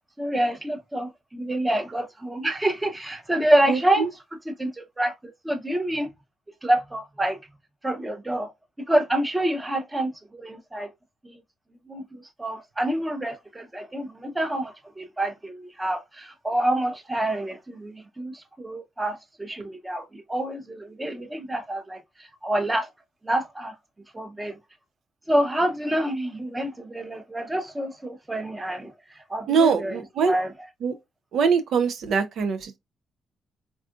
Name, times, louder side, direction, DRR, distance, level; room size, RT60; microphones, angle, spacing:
voice 1, 0.2-4.1 4.5-6.1 6.6-7.4 7.8-8.5 8.9-10.9 11.2-11.3 11.9-18.3 18.6-22.0 22.4-22.9 23.2-23.7 24.1-24.6 25.3-28.9 29.3-30.5, right 1 dB, 15° right, 0.7 m, -27 dB
voice 2, 3.7-4.1 29.5-30.3 30.8-30.9 31.3-32.8, right 5 dB, 70° right, 0.4 m, -23 dB
3.5 x 2.4 x 2.4 m
cardioid pair, 90°, 0 cm